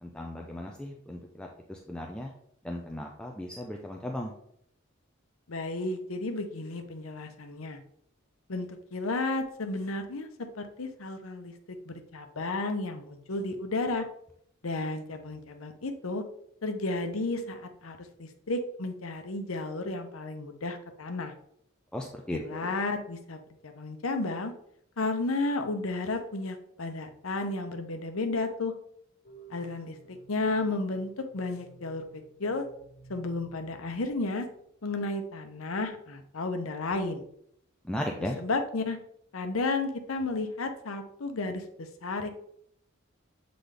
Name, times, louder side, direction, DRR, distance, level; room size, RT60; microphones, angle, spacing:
voice 1, 0.0-2.3 2.6-4.4 21.9-22.7 37.8-38.4, left 1 dB, 5° left, 0 dB, 0.5 m, -36 dB
voice 2, 5.5-7.8 8.5-10.3 10.6-14.0 14.6-16.2 16.6-21.3 22.3-24.5 25.0-28.7 29.5-32.6 33.1-34.5 34.8-37.2 38.4-39.0 39.3-42.3, left 2 dB, 90° left, 6 dB, 0.8 m, -33 dB
sound 1, 29.2-34.6, right 4 dB, 50° left, 1.3 m, -55 dB
7.7 x 3.9 x 3.4 m, 0.70 s
head